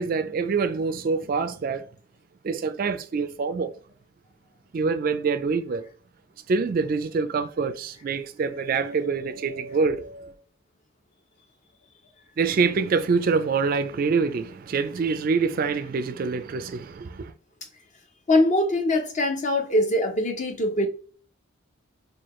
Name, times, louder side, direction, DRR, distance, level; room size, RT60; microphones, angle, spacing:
voice 1, 0.0-1.9 2.4-3.7 4.7-5.9 6.5-10.4 12.4-17.3, right 4 dB, 45° right, 0.3 m, -25 dB
voice 2, 18.3-20.9, left 1 dB, 35° left, 0.7 m, -22 dB
4.7 x 2.3 x 3.0 m
head